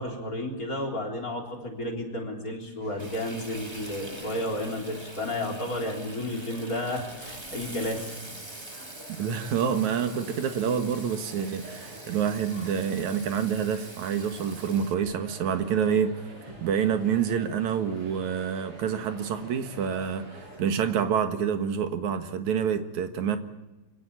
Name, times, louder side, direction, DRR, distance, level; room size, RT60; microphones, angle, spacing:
voice 1, 0.0-8.1, left 1 dB, 30° left, 4.1 m, -32 dB
sound 1, 2.8-20.6, right 1 dB, 45° right, 9.0 m, -47 dB
Frying (food), 3.0-14.9, right 1 dB, 15° right, 1.2 m, -45 dB
voice 2, 9.2-16.2 16.6-20.3 20.6-23.4, right 7 dB, 80° right, 2.9 m, -27 dB
25.0 x 17.5 x 8.8 m
omnidirectional pair, 3.3 m